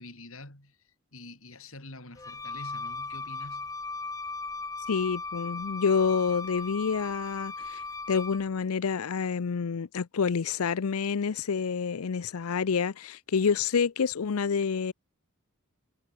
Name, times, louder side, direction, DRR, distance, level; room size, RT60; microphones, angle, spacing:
voice 1, 0.0-3.8, left 2 dB, 70° left, 6.9 m, -46 dB
Wind instrument woodwind instrument, 2.2-8.5, left 3 dB, 15° left, 1.0 m, -37 dB
voice 2, 4.9-14.9, left 6 dB, 85° left, 0.5 m, -28 dB
head